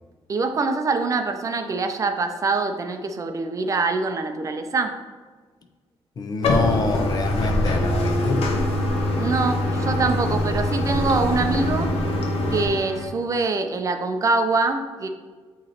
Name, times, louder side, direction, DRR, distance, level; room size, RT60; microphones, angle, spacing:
voice 1, 0.3-5.0 9.2-11.9 12.5-15.1, right 3 dB, 35° right, 6 dB, 0.5 m, -24 dB
voice 2, 6.2-8.5, left 4 dB, 40° left, 6 dB, 0.6 m, -27 dB
Bathtub (filling or washing), 6.4-12.7, left 1 dB, 80° left, 1.1 m, -23 dB
sound 1, 7.7-13.1, right 1 dB, 5° left, 1.9 m, -32 dB
8.8 x 3.1 x 4.3 m, 1.4 s
wide cardioid pair, 160°, 10 cm